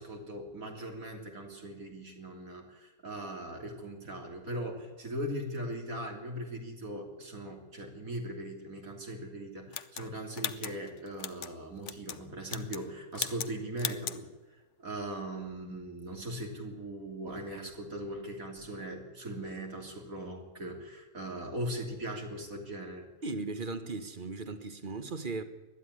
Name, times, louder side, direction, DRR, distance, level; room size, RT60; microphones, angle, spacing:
voice 1, 0.0-14.3 14.8-23.1, right 1 dB, 70° right, 3.6 m, -39 dB
sound 1, 9.7-11.5 11.8-12.2 12.5-12.9 13.1-13.5 13.8-14.2, left 8 dB, 60° left, 1.1 m, -37 dB
voice 2, 23.2-25.4, right 3 dB, 35° right, 1.6 m, -37 dB
20.5 x 13.0 x 10.0 m
omnidirectional pair, 1.5 m